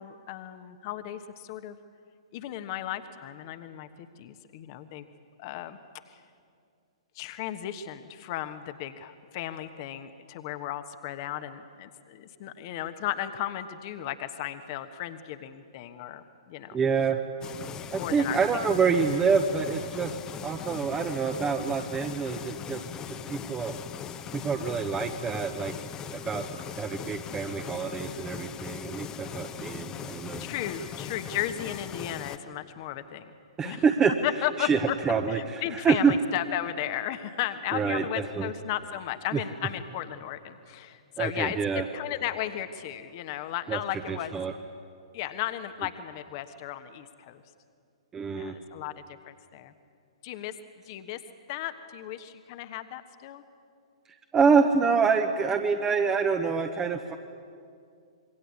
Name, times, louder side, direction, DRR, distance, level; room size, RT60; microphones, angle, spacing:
voice 1, 0.0-1.8 2.3-3.9 4.2-5.1 5.4-5.8 6.1-6.2 7.1-16.8 17.9-18.7 30.4-33.3 33.6-33.8 34.2-35.0 35.3-44.3 45.1-47.4 48.4-48.9 49.2-49.7 50.2-50.6 50.9-51.2 51.5-53.4, left 12 dB, 40° left, 10 dB, 1.3 m, -35 dB
voice 2, 16.7-17.2 17.9-22.8 23.2-23.8 24.3-25.7 26.1-26.4 26.8-30.5 33.6-34.1 34.6-34.8 35.0-36.1 37.7-38.5 41.2-41.8 43.7-43.8 44.1-44.5 48.1-48.5 54.3-57.2, right 5 dB, 15° right, 5 dB, 1.2 m, -26 dB
sound 1, 17.4-32.4, left 8 dB, 20° left, 1.1 m, -39 dB
26.5 x 22.5 x 8.4 m, 2.3 s
figure-of-eight pair, 115°, 3 cm